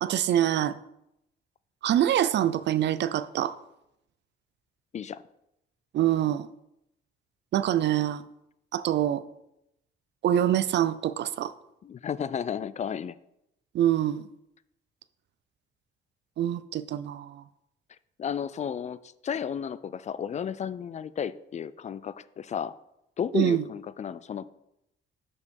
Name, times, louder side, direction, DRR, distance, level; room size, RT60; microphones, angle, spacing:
voice 1, 0.0-0.8 1.8-3.5 5.9-6.5 7.5-8.2 8.7-9.2 10.2-11.5 13.7-14.2 16.4-17.4 23.3-23.6, right 11 dB, 60° right, 15 dB, 0.5 m, -25 dB
voice 2, 11.8-13.2 18.2-22.7 23.2-24.5, left 8 dB, 35° left, 17 dB, 0.4 m, -33 dB
6.3 x 5.5 x 5.3 m, 0.84 s
cardioid pair, 90°, 20 cm